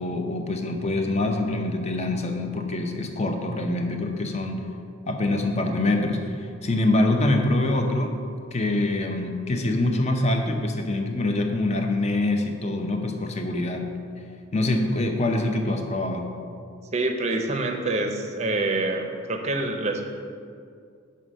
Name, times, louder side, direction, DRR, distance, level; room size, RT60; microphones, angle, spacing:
voice 1, 0.0-4.6 5.1-8.2 8.5-13.9 14.5-16.3, left 2 dB, 30° left, 4 dB, 0.6 m, -25 dB
voice 2, 16.9-20.0, right 2 dB, 30° right, 4 dB, 0.6 m, -26 dB
5.6 x 5.2 x 6.2 m, 2.3 s
head